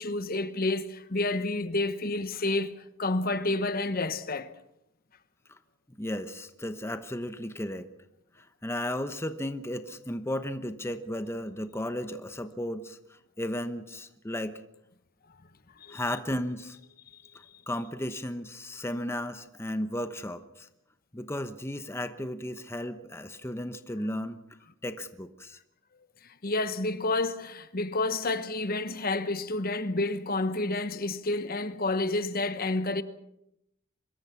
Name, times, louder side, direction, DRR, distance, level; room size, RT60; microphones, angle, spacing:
voice 1, 0.0-4.5 15.8-16.0 26.2-33.0, left 2 dB, 45° left, 1.1 m, -29 dB
voice 2, 6.0-7.9 8.3-13.0 13.4-14.6 15.9-16.8 17.7-20.7 21.1-24.4 24.8-25.6, left 1 dB, 10° left, 1.0 m, -34 dB
25.0 x 22.0 x 5.9 m
head